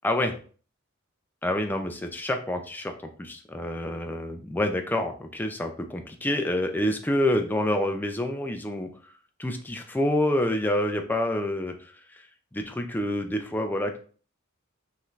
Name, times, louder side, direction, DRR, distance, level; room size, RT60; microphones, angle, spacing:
voice 1, 0.0-0.4 1.4-2.9 3.2-9.1 9.4-12.2 12.5-14.0, left 1 dB, 10° left, 4 dB, 0.4 m, -27 dB
5.5 x 3.2 x 2.5 m, 0.41 s
head